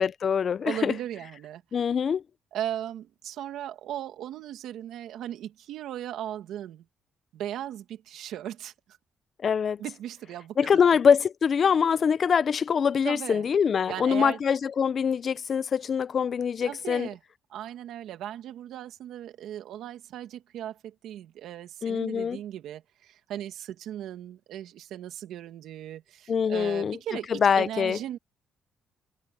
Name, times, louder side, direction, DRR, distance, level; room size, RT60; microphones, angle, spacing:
voice 1, 0.0-0.9 1.7-2.2 9.4-9.8 10.6-17.1 21.8-22.4 26.3-27.0 27.3-28.0, left 7 dB, 50° left, 0.6 m, -24 dB
voice 2, 0.6-1.6 2.5-6.8 7.3-8.7 9.8-11.0 13.0-13.5 13.9-14.4 16.7-17.2 17.5-28.2, right 11 dB, 80° right, 2.2 m, -37 dB
cardioid pair, 90°, 0 cm